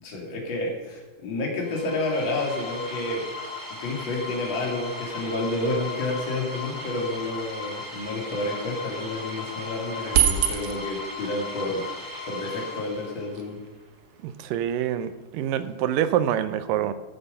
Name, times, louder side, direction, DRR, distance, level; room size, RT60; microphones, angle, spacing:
voice 1, 0.0-3.2 3.8-11.9 12.3-13.6, left 2 dB, 40° left, -1 dB, 3.0 m, -30 dB
sound 1, 1.6-13.4, left 3 dB, 10° left, 1.0 m, -37 dB
sound 2, 10.1-11.0 12.3-12.4 12.6-16.0, right 8 dB, 60° right, 1.6 m, -28 dB
voice 2, 14.2-16.9, right 10 dB, 90° right, 12 dB, 2.4 m, -26 dB
14.0 x 7.8 x 5.5 m, 1.2 s
omnidirectional pair, 3.8 m